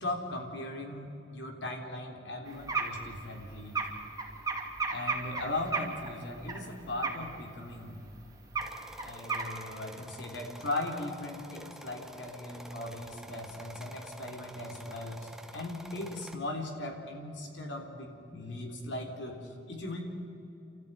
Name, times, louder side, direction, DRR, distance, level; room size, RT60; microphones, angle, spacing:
voice 1, 0.0-3.9 4.9-8.0 9.0-20.0, left 2 dB, 85° left, 2 dB, 3.5 m, -38 dB
sound 1, 2.5-6.6 6.9-7.4 7.8-7.9 8.1-8.2 8.5-9.4, right 4 dB, 20° right, 2.6 m, -34 dB
sound 2, 8.6-16.4, equal, 5° right, 1.0 m, -49 dB
29.5 x 13.5 x 9.4 m, 2.9 s
head